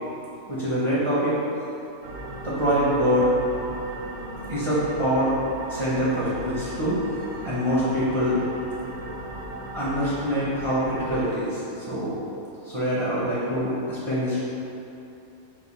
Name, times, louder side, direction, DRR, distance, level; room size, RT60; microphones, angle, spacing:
voice 1, 0.5-1.4 2.4-3.3 4.5-5.3 5.7-7.0 7.4-8.4 9.7-11.6 11.9-12.2 12.6-14.4, equal, 30° right, -10 dB, 0.6 m, -24 dB
sound 1, 2.0-11.3, right 2 dB, 70° right, 0.9 m, -37 dB
4.8 x 2.2 x 4.1 m, 2.9 s
omnidirectional pair, 1.4 m